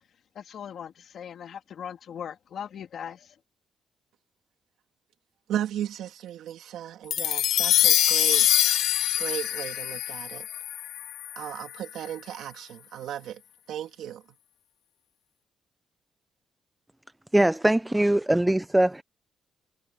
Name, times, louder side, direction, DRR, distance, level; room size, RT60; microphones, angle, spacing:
voice 1, 0.3-3.2, left 8 dB, 60° left, 2.9 m, -39 dB
voice 2, 5.5-8.5 9.2-10.4 11.4-13.4 13.7-14.2, right 11 dB, 85° right, 2.5 m, -35 dB
sound 1, 7.1-11.6, left 12 dB, 85° left, 0.6 m, -24 dB
voice 3, 17.3-19.0, right 1 dB, 5° right, 0.4 m, -22 dB
cardioid pair, 135°, 0 cm